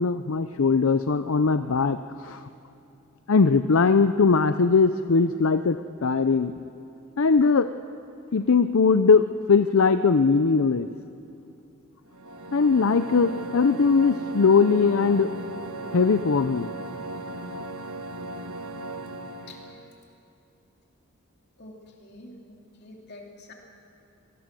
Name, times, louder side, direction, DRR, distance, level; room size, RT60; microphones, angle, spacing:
voice 1, 0.0-2.4 3.3-6.5 7.2-7.7 8.3-10.9 12.5-15.3 15.9-16.7, left 4 dB, 70° left, 10 dB, 0.6 m, -20 dB
sound 1, 12.1-19.9, right 2 dB, 85° right, 1.4 m, -37 dB
voice 2, 19.4-20.0 21.6-23.5, left 2 dB, 50° left, 0 dB, 3.1 m, -47 dB
24.0 x 19.0 x 7.7 m, 2.7 s
head